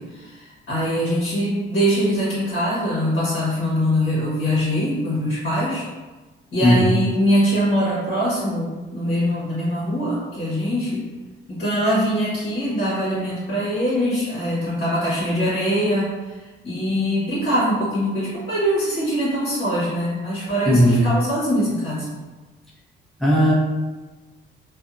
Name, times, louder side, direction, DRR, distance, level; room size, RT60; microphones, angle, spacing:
voice 1, 0.0-5.9 6.5-11.0 11.5-22.1, equal, 55° left, -8 dB, 1.2 m, -23 dB
voice 2, 20.6-21.0 23.2-23.5, equal, ahead, -7 dB, 0.9 m, -15 dB
2.6 x 2.4 x 2.5 m, 1.2 s
cardioid pair, 90°, 20 cm